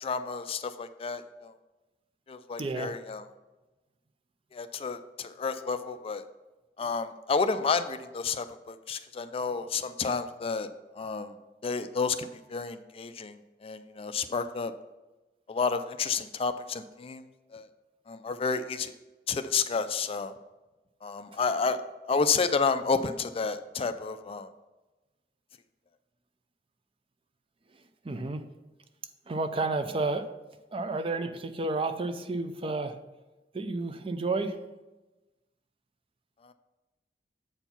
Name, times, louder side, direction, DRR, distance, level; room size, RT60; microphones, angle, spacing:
voice 1, 0.0-1.5 2.3-3.2 4.5-6.2 6.8-10.7 11.0-11.3 11.6-14.7 15.5-17.2 17.5-17.7 18.1-18.9 19.3-20.3 21.0-21.8 22.1-24.5 36.4-36.5, left 5 dB, 35° left, 10 dB, 0.4 m, -30 dB
voice 2, 2.6-2.9 28.0-28.4 29.3-30.3 30.7-33.0 33.5-34.6, right 3 dB, 30° right, 10 dB, 0.5 m, -31 dB
7.9 x 4.5 x 5.6 m, 1.1 s
head